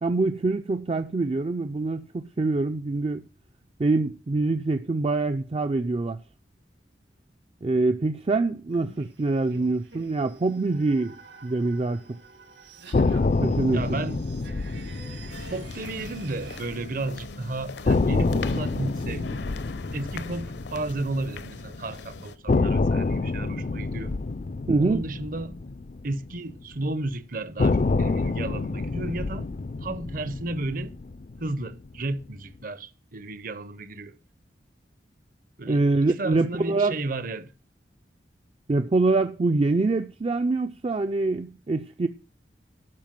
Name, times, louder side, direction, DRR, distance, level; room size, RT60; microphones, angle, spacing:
voice 1, 0.0-3.2 3.8-6.2 7.6-11.2 11.4-12.0 13.4-13.8 24.7-25.0 35.7-37.0 38.7-42.1, right 3 dB, 30° right, 0.4 m, -24 dB
sound 1, 8.7-16.6, right 4 dB, 80° right, 3.2 m, -48 dB
sound 2, 12.9-17.0 17.3-17.4 17.8-21.9 22.5-26.8 27.6-32.0, left 3 dB, 45° left, 0.4 m, -27 dB
voice 2, 13.7-14.2 15.5-19.5 19.9-24.2 24.8-25.6 26.0-29.5 29.8-30.9 31.4-34.2 35.6-37.5, right 2 dB, 50° right, 0.8 m, -33 dB
sound 3, 15.3-22.4, left 4 dB, 70° left, 0.8 m, -41 dB
12.0 x 5.0 x 7.5 m
head